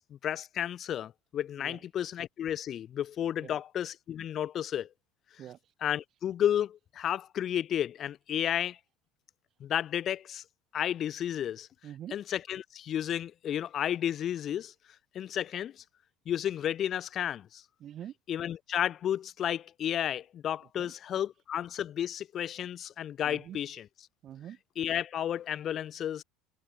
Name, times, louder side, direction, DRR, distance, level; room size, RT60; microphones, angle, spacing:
voice 1, 0.0-4.9 5.8-8.8 9.6-10.4 10.7-11.7 12.1-14.7 15.1-15.8 16.3-17.6 18.3-23.9 24.8-26.2, left 10 dB, 45° left, 0.4 m, -32 dB
voice 2, 5.4-5.7 11.8-12.2 17.8-18.1 20.8-20.9 23.2-23.6 24.2-24.6, right 10 dB, 45° right, 1.0 m, -45 dB
hypercardioid pair, 70°, 0 cm